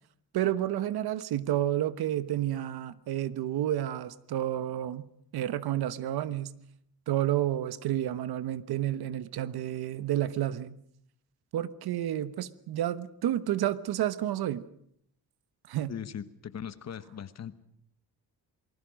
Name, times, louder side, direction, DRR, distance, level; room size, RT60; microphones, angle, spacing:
voice 1, 0.3-5.1 5.3-6.5 7.1-10.8 11.5-14.6 15.7-15.9, right 12 dB, 75° right, 14 dB, 1.2 m, -30 dB
voice 2, 15.9-17.6, left 8 dB, 45° left, 13 dB, 1.2 m, -39 dB
28.0 x 20.0 x 6.4 m, 0.70 s
cardioid pair, 155°, 38 cm